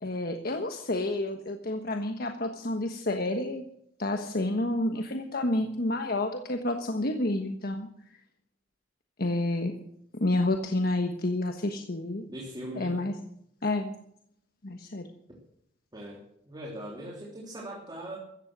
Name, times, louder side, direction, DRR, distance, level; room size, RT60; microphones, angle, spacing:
voice 1, 0.0-3.7 4.0-7.9 9.2-9.7 10.2-12.2 12.7-13.2 13.6-13.9 14.6-15.1, left 2 dB, 55° left, 5 dB, 1.3 m, -29 dB
voice 2, 12.3-13.0 15.9-18.2, right 1 dB, 25° right, -2 dB, 3.4 m, -40 dB
15.5 x 14.0 x 6.3 m, 0.74 s
head